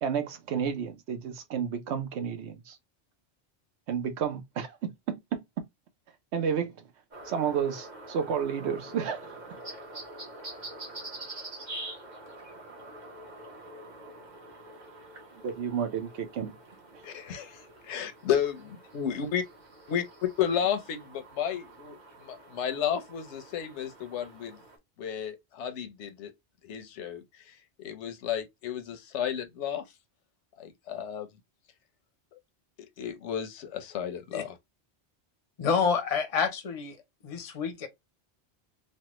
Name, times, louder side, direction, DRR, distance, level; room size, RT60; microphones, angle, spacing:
voice 1, 0.0-2.8 3.9-5.4 6.3-6.7 7.2-9.4 15.4-16.6 16.9-17.0, right 7 dB, 80° right, 0.9 m, -31 dB
sound 1, 7.1-24.8, right 2 dB, 45° right, 1.1 m, -46 dB
voice 2, 17.0-18.6 18.9-19.4 19.9-24.6 25.0-26.3 26.6-29.8 30.6-31.3 32.3-32.4 33.0-34.6, left 9 dB, 85° left, 1.0 m, -32 dB
voice 3, 35.6-37.0 37.2-37.9, left 6 dB, 40° left, 0.6 m, -28 dB
3.3 x 2.1 x 2.9 m
omnidirectional pair, 1.1 m